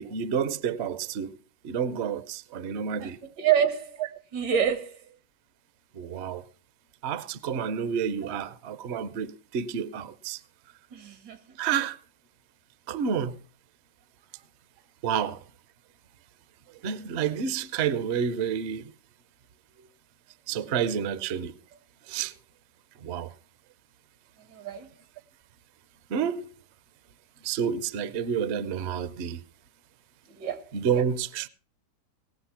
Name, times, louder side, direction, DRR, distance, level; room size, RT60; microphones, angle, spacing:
voice 1, 0.0-1.4 1.6-3.2 4.0-4.1 5.9-6.4 7.0-10.4 11.6-12.0 12.9-13.4 15.0-15.4 16.8-18.9 20.5-21.6 22.1-22.3 23.0-23.3 26.1-26.5 27.4-29.4 30.7-31.5, right 7 dB, 60° right, 0.7 m, -29 dB
voice 2, 3.4-3.8 4.3-4.9 10.9-11.4 24.6-24.9 30.4-30.6, right 8 dB, 80° right, 1.9 m, -26 dB
18.5 x 6.4 x 5.7 m
omnidirectional pair, 1.8 m